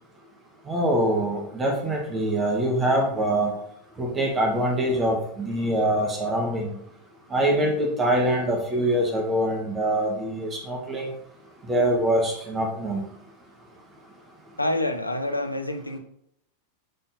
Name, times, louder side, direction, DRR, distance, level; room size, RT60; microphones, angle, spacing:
voice 1, 0.7-3.5 4.0-6.7 7.3-11.1 11.7-13.0, right 1 dB, 20° right, 1.4 m, -24 dB
voice 2, 14.6-16.0, left 1 dB, 85° left, 0.6 m, -27 dB
6.5 x 4.0 x 4.1 m
figure-of-eight pair, 90°, 0 cm